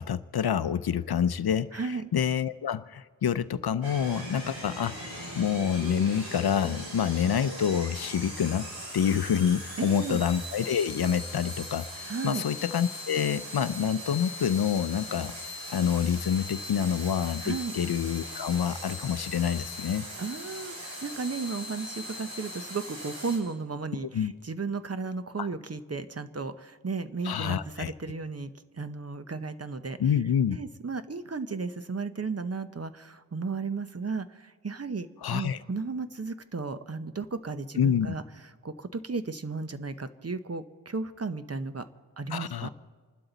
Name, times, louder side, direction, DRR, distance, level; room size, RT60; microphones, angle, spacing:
voice 1, 0.0-5.0 5.4-8.7 8.9-15.4 15.7-20.1 24.1-24.3 25.4-25.5 27.2-27.9 30.0-30.6 35.2-35.6 37.8-38.1 42.3-42.7, left 8 dB, 60° left, 14 dB, 0.6 m, -27 dB
voice 2, 1.7-2.1 9.8-10.2 12.1-12.4 17.4-17.7 20.2-28.5 28.8-30.0 30.5-38.2 38.6-41.8 42.2-42.7, right 4 dB, 35° right, 11 dB, 0.8 m, -34 dB
sound 1, 3.8-23.4, equal, 55° right, 5.9 m, -40 dB
28.5 x 12.0 x 4.0 m, 1.5 s
wide cardioid pair, 75°, 44 cm